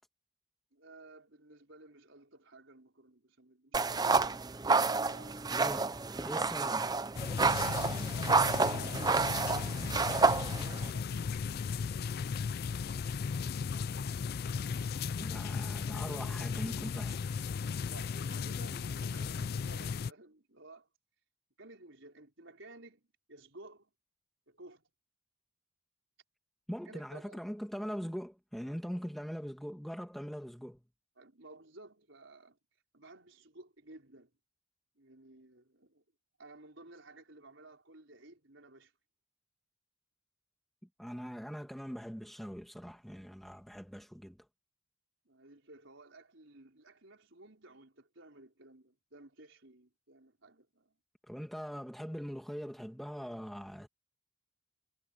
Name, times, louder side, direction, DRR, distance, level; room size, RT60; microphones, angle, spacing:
voice 1, 0.7-4.3 4.9-6.0 8.5-11.9 15.9-16.5 17.9-20.9 21.6-23.0 23.3-23.9 24.5-24.8 26.9-27.4 31.2-32.6 32.9-34.3 34.9-36.0 36.4-38.9 45.2-51.0, right 2 dB, 60° right, 5.0 m, -55 dB
sound 1, 3.7-10.9, right 4 dB, 20° right, 0.5 m, -29 dB
voice 2, 5.5-6.0 6.2-6.9 15.2-17.5 26.7-30.8 41.0-44.5 51.3-53.9, equal, ahead, 2.0 m, -42 dB
sound 2, 7.2-20.1, left 6 dB, 45° left, 0.3 m, -36 dB
head